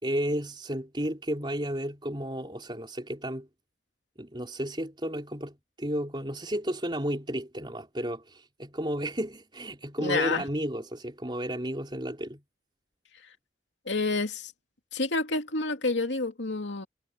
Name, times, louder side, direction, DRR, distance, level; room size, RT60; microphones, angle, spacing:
voice 1, 0.0-3.5 4.2-12.4, equal, 25° right, 4.2 m, -33 dB
voice 2, 10.0-10.4 13.9-14.5 14.9-16.9, left 3 dB, 90° left, 2.5 m, -28 dB
head